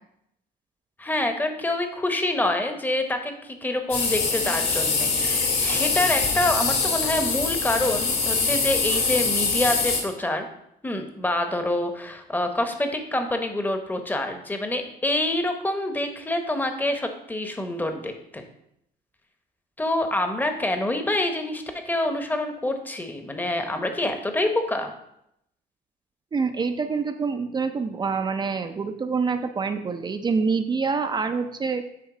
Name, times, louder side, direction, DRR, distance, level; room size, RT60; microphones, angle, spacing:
voice 1, 1.0-10.5 10.8-18.4 19.8-24.9, left 1 dB, 10° left, 5 dB, 0.9 m, -26 dB
sound 1, 3.9-10.0, left 4 dB, 65° left, 2.2 m, -24 dB
voice 2, 26.3-31.8, right 5 dB, 25° right, 7 dB, 0.5 m, -26 dB
9.4 x 3.2 x 4.8 m, 0.77 s
cardioid pair, 110°, 17 cm